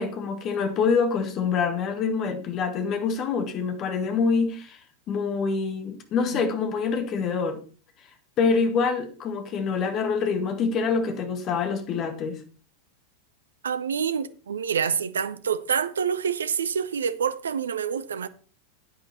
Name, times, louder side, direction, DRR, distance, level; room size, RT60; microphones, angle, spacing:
voice 1, 0.0-4.8 5.1-7.6 8.4-12.4, left 5 dB, 30° left, 1.8 m, -26 dB
voice 2, 13.6-18.3, right 7 dB, 70° right, 0.7 m, -27 dB
10.0 x 8.9 x 4.2 m
figure-of-eight pair, 90°, 0 cm